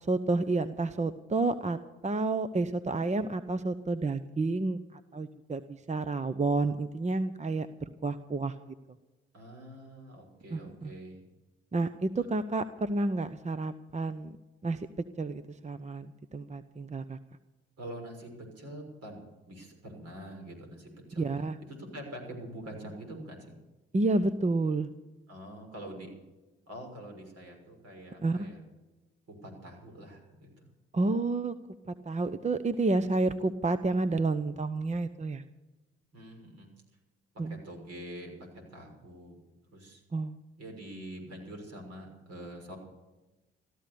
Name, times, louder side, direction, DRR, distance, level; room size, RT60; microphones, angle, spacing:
voice 1, 0.1-7.7 8.0-8.6 10.5-10.9 11.7-14.4 14.6-14.9 15.2-17.2 21.2-21.6 23.9-24.9 28.2-28.5 30.9-31.5 32.0-35.4 37.4-37.6 40.1-40.4, right 3 dB, 25° right, 12 dB, 0.9 m, -30 dB
voice 2, 9.3-11.2 12.2-12.3 17.8-21.3 21.6-23.5 25.3-26.1 26.7-28.6 29.3-30.7 36.1-36.7 37.3-39.4 39.6-40.0 40.6-42.8, right 1 dB, 60° right, 2 dB, 6.3 m, -45 dB
15.0 x 13.5 x 6.9 m, 1.1 s
hypercardioid pair, 50°, 29 cm